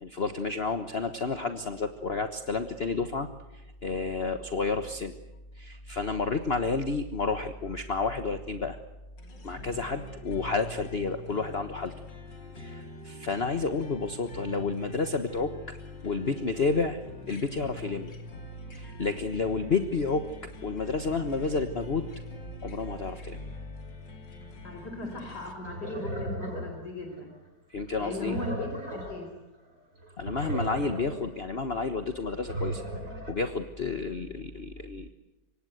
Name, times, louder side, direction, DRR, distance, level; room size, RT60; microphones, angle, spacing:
voice 1, 0.0-5.1 5.6-8.8 9.4-11.9 12.6-17.0 17.3-18.1 18.7-22.1 22.6-23.4 27.7-28.4 30.2-32.8 33.3-35.1, left 4 dB, 40° left, 8 dB, 1.4 m, -30 dB
sound 1, 9.2-25.5, left 1 dB, 85° left, 3.6 m, -44 dB
voice 2, 24.6-27.3 28.0-29.3, left 2 dB, 65° left, 3 dB, 4.9 m, -38 dB
sound 2, 25.6-27.4 27.9-29.3 29.6-29.7 29.9-31.3 31.8-33.3, right 1 dB, 45° right, 6.9 m, -36 dB
27.0 x 24.0 x 8.0 m, 0.97 s
omnidirectional pair, 1.9 m